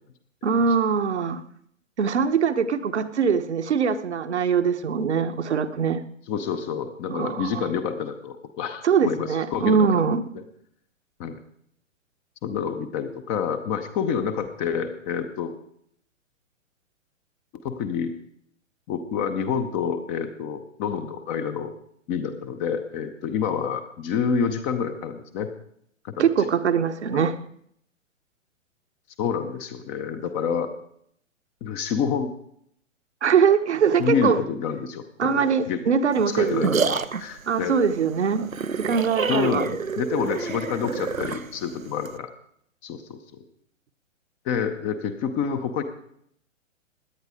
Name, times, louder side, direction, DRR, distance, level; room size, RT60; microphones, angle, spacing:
voice 1, 0.4-1.4 2.0-6.0 7.1-7.6 8.8-10.2 26.2-27.4 33.2-34.4 35.2-36.7 37.5-38.4 38.8-39.6, right 6 dB, 60° right, 8 dB, 1.1 m, -22 dB
voice 2, 6.3-10.0 10.3-10.4 11.2-11.4 12.4-15.5 17.6-18.1 18.9-21.7 22.1-25.5 26.0-26.5 27.1-27.2 29.2-30.7 31.6-32.3 34.0-35.8 36.3-37.8 39.3-42.3 42.8-43.4 44.4-45.8, left 7 dB, 15° left, 8 dB, 0.7 m, -28 dB
sound 1, 36.1-42.2, right 5 dB, 90° right, 0.7 m, -29 dB
17.0 x 10.5 x 4.9 m, 0.69 s
figure-of-eight pair, 120°, 39 cm